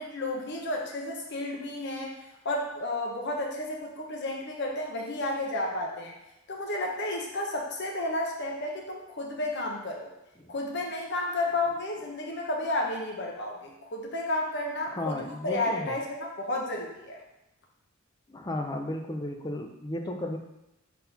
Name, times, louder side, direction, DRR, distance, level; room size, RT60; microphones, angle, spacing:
voice 1, 0.0-2.2 2.4-6.1 6.5-10.1 10.5-17.2, left 2 dB, 55° left, -1 dB, 1.0 m, -32 dB
voice 2, 14.8-16.0 18.3-20.4, left 1 dB, 20° left, 4 dB, 0.6 m, -34 dB
4.3 x 4.2 x 5.5 m, 0.93 s
head